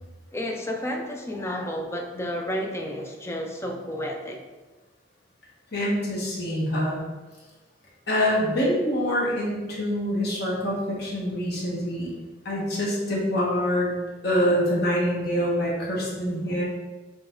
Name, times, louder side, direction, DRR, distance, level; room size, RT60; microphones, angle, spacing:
voice 1, 0.3-4.4, equal, 15° left, 2 dB, 0.5 m, -31 dB
voice 2, 5.7-7.0 8.1-12.1 12.4-13.9 14.2-16.6, equal, 60° left, -5 dB, 1.3 m, -25 dB
4.1 x 3.3 x 3.8 m, 1.2 s
head